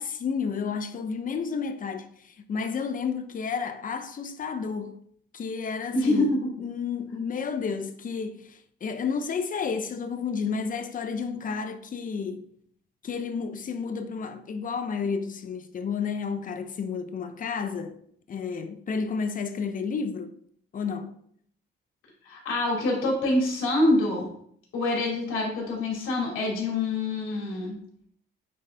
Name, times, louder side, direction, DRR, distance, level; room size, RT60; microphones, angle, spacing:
voice 1, 0.0-5.0 5.3-6.3 6.6-12.5 13.0-18.0 18.3-20.4 20.7-21.1, left 5 dB, 45° left, 0.8 m, -31 dB
voice 2, 5.9-6.5 22.2-24.3 24.7-27.8, left 2 dB, 90° left, 2.6 m, -25 dB
8.6 x 4.0 x 3.4 m
cardioid pair, 90°, 20 cm